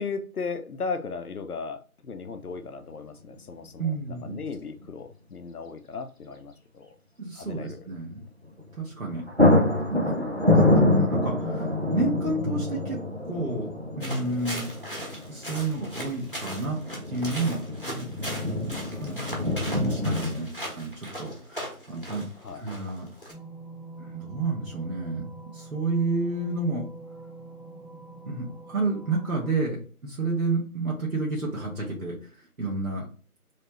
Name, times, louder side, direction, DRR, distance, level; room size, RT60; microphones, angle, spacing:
voice 1, 0.0-3.9 4.2-6.9 7.4-7.9 22.4-22.6, left 4 dB, 75° left, 9 dB, 0.6 m, -36 dB
sound 1, 2.4-2.5 4.1-4.5 4.8-4.9 8.6-8.8 9.1-20.4, left 2 dB, 45° right, 0.5 m, -26 dB
voice 2, 3.8-4.4 7.2-8.2 8.7-9.5 9.9-13.0 13.3-14.7 15.3-16.8 17.1-18.1 18.9-22.3 22.6-23.1 24.0-26.9 28.3-33.1, right 3 dB, 65° right, -3 dB, 1.3 m, -30 dB
sound 2, 14.0-23.3, equal, 35° left, 1.0 m, -38 dB
sound 3, 23.3-29.5, right 3 dB, ahead, 0.5 m, -45 dB
3.2 x 2.8 x 2.9 m, 0.39 s
figure-of-eight pair, 180°, 45 cm